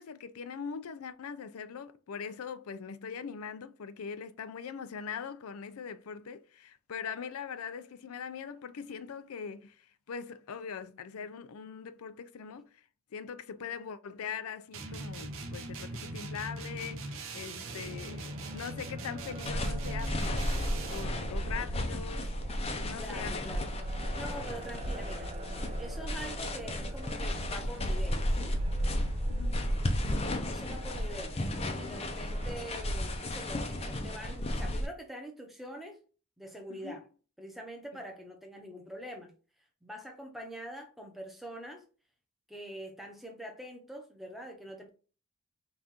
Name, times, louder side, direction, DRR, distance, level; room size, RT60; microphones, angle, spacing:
voice 1, 0.0-12.8 13.1-20.5 20.9-22.3 22.8-23.7 29.3-29.6 36.7-37.0, left 6 dB, 80° left, 0.4 m, -42 dB
sound 1, 14.7-21.2, right 2 dB, 65° right, 0.8 m, -41 dB
sound 2, 17.6-34.4, right 2 dB, 25° right, 0.5 m, -48 dB
sound 3, 19.5-34.9, left 1 dB, 25° left, 0.5 m, -33 dB
voice 2, 23.0-23.7 24.1-25.3 25.8-28.6 30.4-36.0 36.4-37.0 37.4-39.3 39.8-41.8 42.5-44.9, equal, ahead, 0.8 m, -44 dB
5.4 x 2.5 x 2.9 m
head